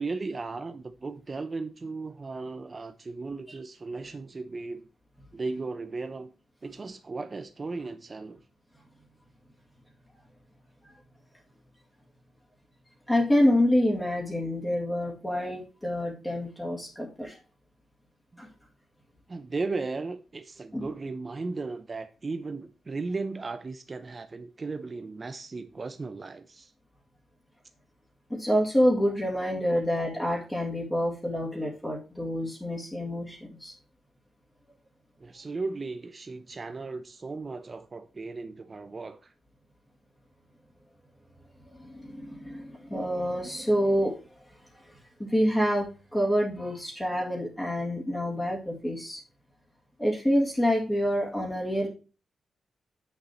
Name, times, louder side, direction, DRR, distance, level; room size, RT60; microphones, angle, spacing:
voice 1, 0.0-4.9 5.3-6.3 6.6-8.4 18.3-18.4 19.3-26.7 35.2-39.3, right 3 dB, 30° right, 0.7 m, -36 dB
voice 2, 13.1-17.4 18.4-18.5 20.7-20.9 28.3-33.7 41.7-44.1 44.7-49.2 50.0-51.9, equal, 10° left, 2.3 m, -27 dB
8.1 x 6.7 x 4.4 m
wide cardioid pair, 120°, 0 cm